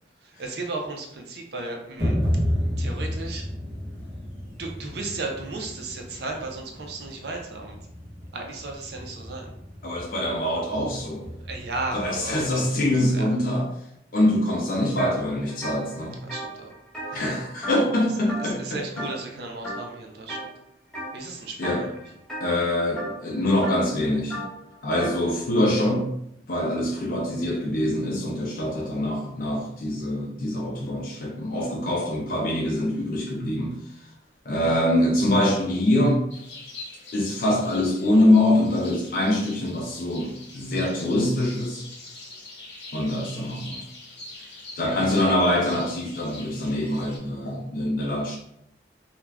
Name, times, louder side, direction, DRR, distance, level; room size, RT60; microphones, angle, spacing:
voice 1, 0.2-2.2 2.8-3.5 4.6-7.8 8.3-9.5 11.4-12.5 13.1-13.4 16.1-16.7 17.1-17.2 18.4-20.5 21.1-22.0 44.3-45.3, right 3 dB, 65° right, 1 dB, 0.5 m, -35 dB
sound 1, 2.0-12.5, equal, 25° right, 0.9 m, -32 dB
voice 2, 9.8-11.2 11.9-13.7 14.1-16.2 17.1-18.8 21.6-21.8 22.4-24.4 24.8-26.1 26.5-33.8 34.5-36.3 37.1-41.8 42.9-43.9 44.8-48.4, left 1 dB, 50° left, -2 dB, 0.4 m, -24 dB
sound 2, 15.0-15.2 15.5-18.0 18.3-18.7 19.0-19.3 19.6-20.5 20.9-21.2 21.6-25.2, equal, 5° left, 0.6 m, -35 dB
sound 3, 36.3-47.2, left 3 dB, 85° left, 0.9 m, -44 dB
2.3 x 2.1 x 3.3 m, 0.76 s
head